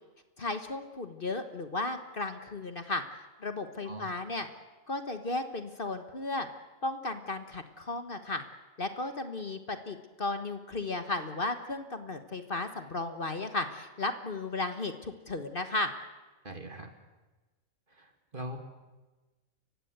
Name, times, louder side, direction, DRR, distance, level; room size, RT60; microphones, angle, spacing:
voice 1, 0.4-4.5 4.9-6.5 6.8-8.4 8.8-15.9, left 2 dB, 40° left, 8 dB, 1.4 m, -35 dB
voice 2, 16.4-16.9 17.9-18.6, right 1 dB, 40° right, 5 dB, 2.5 m, -42 dB
29.5 x 16.5 x 8.0 m, 1.2 s
omnidirectional pair, 1.4 m